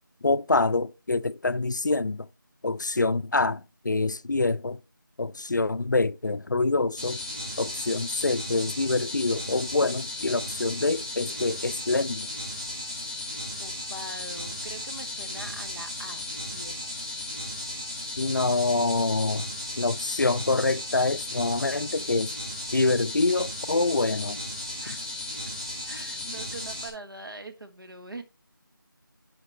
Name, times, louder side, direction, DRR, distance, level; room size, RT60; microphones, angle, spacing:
voice 1, 0.2-2.3 2.6-4.8 5.2-7.2 7.6-12.3 18.2-19.5 19.8-22.3 22.7-24.4 24.9-25.0, left 3 dB, 55° left, 0.4 m, -26 dB
sound 1, 7.0-26.9, left 1 dB, 15° right, 2.2 m, -35 dB
voice 2, 13.6-16.2 16.5-16.9 24.8-25.0 25.8-28.2, right 1 dB, 75° right, 1.5 m, -42 dB
8.1 x 5.2 x 4.2 m
figure-of-eight pair, 170°, 12 cm